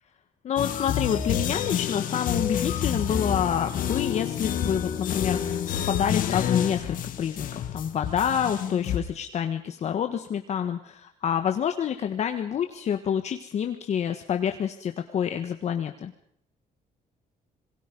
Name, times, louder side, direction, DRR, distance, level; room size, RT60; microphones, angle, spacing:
voice 1, 0.4-16.1, left 8 dB, 50° left, 6 dB, 1.4 m, -28 dB
sound 1, 0.6-9.0, left 9 dB, 65° left, 2.1 m, -29 dB
27.0 x 21.5 x 5.3 m, 0.67 s
cardioid pair, 160°, 15 cm